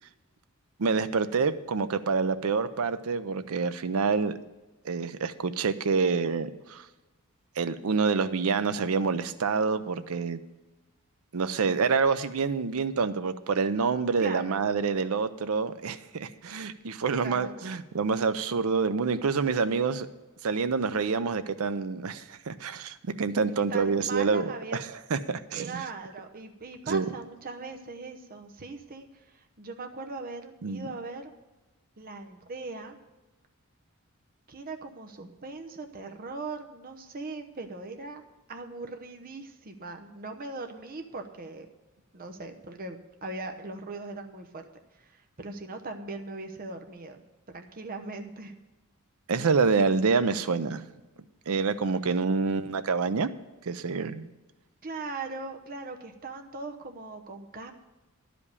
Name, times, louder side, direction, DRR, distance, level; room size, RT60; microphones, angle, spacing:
voice 1, 0.8-4.3 4.8-6.9 7.6-10.4 11.3-20.1 20.4-25.8 26.9-27.1 30.6-30.9 49.3-50.9 51.5-53.3 53.6-54.3, right 5 dB, 70° right, 12 dB, 0.6 m, -27 dB
voice 2, 14.2-14.6 17.1-17.7 23.5-24.8 25.5-31.3 32.0-33.0 34.5-38.2 38.5-41.7 42.1-48.6 54.8-57.7, right 3 dB, 40° right, 5 dB, 0.9 m, -40 dB
11.0 x 5.2 x 8.4 m, 1.1 s
head